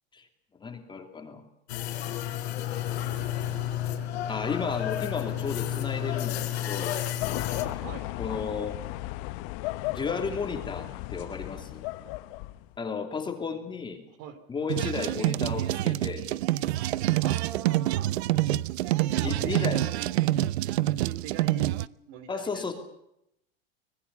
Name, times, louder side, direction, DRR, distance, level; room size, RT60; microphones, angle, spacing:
voice 1, 0.6-1.4 4.2-7.0 8.2-8.8 9.9-11.8 12.8-14.0 14.5-16.2 19.2-19.8 22.3-22.7, left 5 dB, 15° left, 5 dB, 2.9 m, -33 dB
sound 1, 1.7-7.6, left 11 dB, 85° left, 4.5 m, -31 dB
sound 2, 7.2-12.8, left 18 dB, 50° left, 1.2 m, -35 dB
voice 2, 7.8-8.1 14.1-14.4 14.9-15.1 17.2-18.1 19.0-20.1 20.8-22.7, right 9 dB, 50° right, 11 dB, 3.1 m, -42 dB
sound 3, 14.7-21.9, right 15 dB, 85° right, 0.8 m, -27 dB
25.5 x 19.5 x 7.1 m, 0.81 s
supercardioid pair, 140°, 32 cm